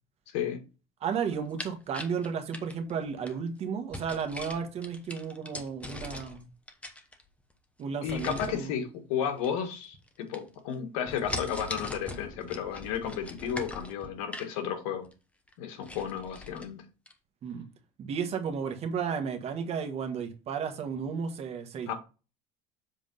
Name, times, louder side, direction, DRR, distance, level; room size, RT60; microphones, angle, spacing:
voice 1, 1.0-6.4 7.8-8.7 17.4-17.7 18.0-21.9, right 6 dB, 40° right, 1.4 m, -33 dB
sound 1, 1.3-3.3 3.9-6.4 6.7-7.5 8.1-8.6 9.4-10.1 10.3-10.7 11.0-14.6 15.0-15.1 15.5-15.6 15.8-16.7 17.1-17.2, left 2 dB, 5° left, 1.0 m, -41 dB
voice 2, 8.0-15.1 15.6-16.8 21.9-22.0, left 8 dB, 90° left, 1.7 m, -33 dB
7.6 x 3.6 x 5.3 m
cardioid pair, 145°, 17 cm